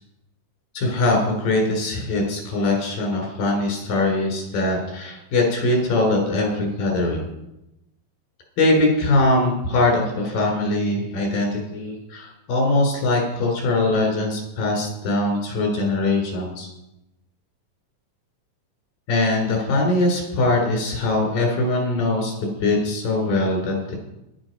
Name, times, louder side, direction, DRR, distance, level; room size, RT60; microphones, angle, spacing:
voice 1, 0.8-7.2 8.6-16.7 19.1-23.9, left 2 dB, 85° left, 1 dB, 5.2 m, -22 dB
12.0 x 11.0 x 5.3 m, 0.89 s
omnidirectional pair, 3.8 m